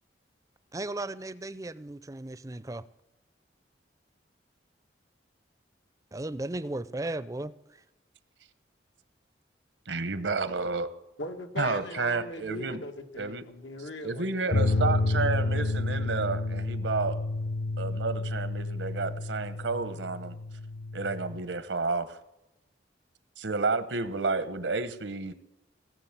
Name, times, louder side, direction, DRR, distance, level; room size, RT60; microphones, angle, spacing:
voice 1, 0.7-2.8 6.1-7.8, right 2 dB, 20° right, 16 dB, 0.5 m, -36 dB
voice 2, 9.9-10.9 11.6-12.8 13.1-13.4 14.0-17.2 17.8-20.4 20.9-22.2 23.4-25.3, right 4 dB, 85° right, 13 dB, 1.1 m, -31 dB
voice 3, 11.2-15.4, left 3 dB, 90° left, 5 dB, 1.6 m, -40 dB
sound 1, 14.5-21.4, left 2 dB, 45° left, 0.5 m, -30 dB
18.5 x 7.4 x 7.4 m, 0.94 s
head